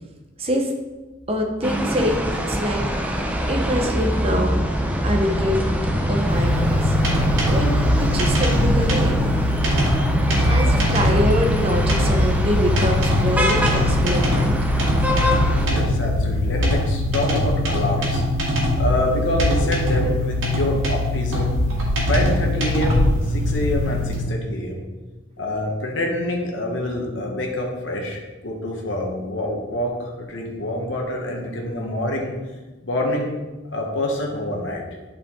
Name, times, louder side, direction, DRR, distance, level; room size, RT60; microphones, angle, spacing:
voice 1, 0.4-0.7 1.3-3.2 3.5-4.6 5.0-5.5 6.1-7.0 7.5-9.4 10.4-14.5, equal, 30° right, 2 dB, 1.0 m, -25 dB
sound 1, 1.2-17.6, equal, 45° right, 1.4 m, -26 dB
sound 2, 1.6-15.7, equal, 10° right, 0.7 m, -24 dB
sound 3, 6.3-24.2, left 1 dB, 90° right, 2.2 m, -22 dB
voice 2, 15.6-18.2 18.8-21.6 22.1-24.8 25.4-32.3 32.8-33.3 33.7-34.8, left 1 dB, 70° left, -1 dB, 1.2 m, -26 dB
8.6 x 5.1 x 3.8 m, 1.2 s
head